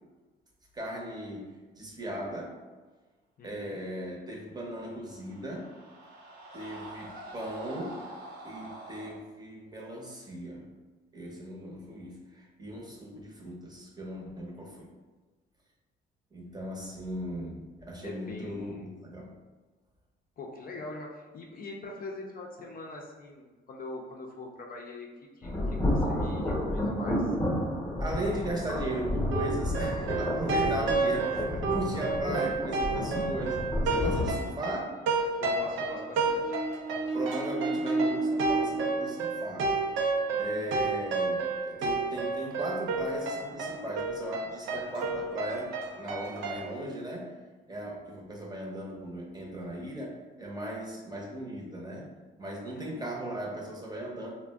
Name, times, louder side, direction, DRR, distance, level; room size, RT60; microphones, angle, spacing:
voice 1, 0.7-2.6 3.4-5.7 6.5-8.1 8.4-10.6 11.1-14.9 16.3-19.3 28.0-33.6 33.8-35.0 37.1-39.7 40.3-47.4 47.7-52.1 52.4-54.3, right 1 dB, 20° right, -2 dB, 0.7 m, -37 dB
voice 2, 3.4-3.8 16.4-16.8 18.0-18.8 20.4-25.1 25.4-27.3 35.4-36.6 40.3-40.9 52.7-53.1, left 2 dB, 45° left, 0 dB, 0.5 m, -43 dB
sound 1, 4.7-9.1, right 1 dB, 50° right, 0.8 m, -46 dB
sound 2, 25.4-34.3, left 1 dB, 10° left, 0.8 m, -31 dB
sound 3, 29.3-46.7, right 3 dB, 80° right, 0.5 m, -30 dB
2.4 x 2.1 x 3.4 m, 1.3 s
cardioid pair, 90°, 20 cm